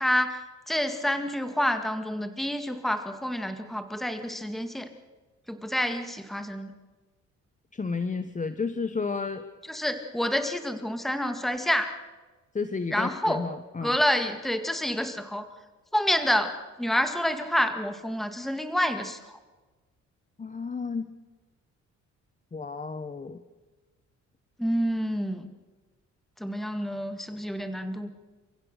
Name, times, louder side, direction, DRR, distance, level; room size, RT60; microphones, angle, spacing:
voice 1, 0.0-4.9 5.5-6.7 9.7-11.9 12.9-13.4 13.8-15.5 15.9-16.5 16.8-19.2 24.6-25.5 26.4-28.1, equal, ahead, 8 dB, 2.0 m, -28 dB
voice 2, 7.7-9.5 12.5-14.0 20.4-21.1 22.5-23.4, left 4 dB, 25° left, 11 dB, 1.2 m, -32 dB
29.5 x 15.5 x 6.7 m, 1.2 s
cardioid pair, 90°, 30 cm